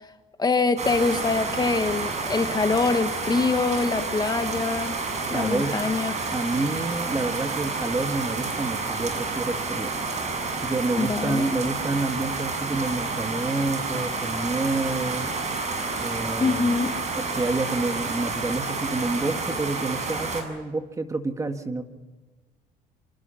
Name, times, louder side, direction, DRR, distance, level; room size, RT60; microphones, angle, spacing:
voice 1, 0.4-5.0 5.3-6.1 11.0-11.5 16.4-16.9, left 4 dB, 25° left, 8 dB, 1.5 m, -24 dB
sound 1, 0.8-20.4, right 3 dB, 40° right, 7.1 m, -30 dB
voice 2, 5.3-5.8 6.3-9.9 10.6-15.3 16.0-16.9 17.1-21.8, right 2 dB, 20° right, 7 dB, 1.9 m, -28 dB
27.0 x 26.0 x 5.8 m, 1.3 s
cardioid pair, 110°, 17 cm